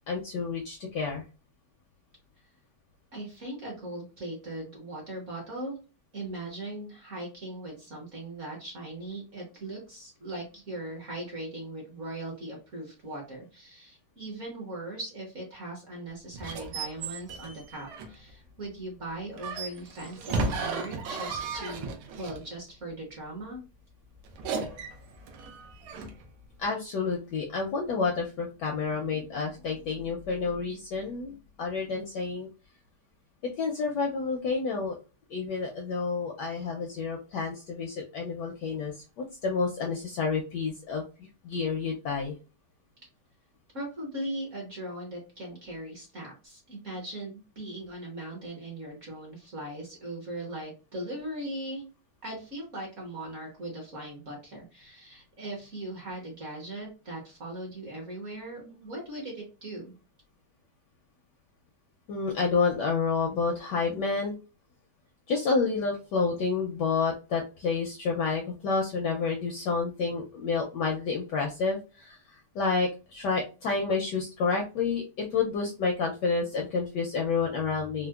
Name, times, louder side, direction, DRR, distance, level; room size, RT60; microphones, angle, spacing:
voice 1, 0.1-1.2 26.6-32.5 33.6-34.9 35.3-42.3 62.1-64.3 65.3-78.1, left 4 dB, 75° left, 1 dB, 1.0 m, -29 dB
voice 2, 3.1-5.7 6.1-23.6 43.7-51.8 52.2-59.9, right 1 dB, 50° right, -1 dB, 1.0 m, -39 dB
sound 1, 16.3-18.3 19.4-22.5 24.3-26.3, right 3 dB, 90° right, 1.6 m, -35 dB
4.4 x 2.0 x 2.3 m, 0.33 s
omnidirectional pair, 2.3 m